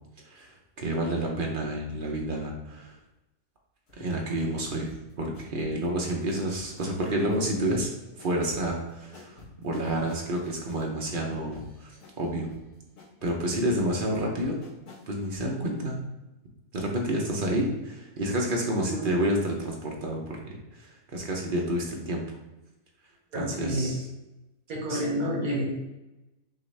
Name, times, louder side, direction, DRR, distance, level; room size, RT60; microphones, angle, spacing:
voice 1, 0.3-2.9 4.0-7.9 8.2-11.9 12.2-12.5 13.2-14.6 15.1-16.0 16.7-22.2 23.3-24.0 24.9-25.0, right 1 dB, 45° right, 0 dB, 0.8 m, -29 dB
sound 1, 3.9-15.5 15.8-15.9, left 3 dB, 80° left, 2.0 m, -50 dB
voice 2, 23.3-23.9 24.7-25.6, equal, 65° right, -3 dB, 1.8 m, -29 dB
6.3 x 2.6 x 3.2 m, 1.0 s
omnidirectional pair, 1.6 m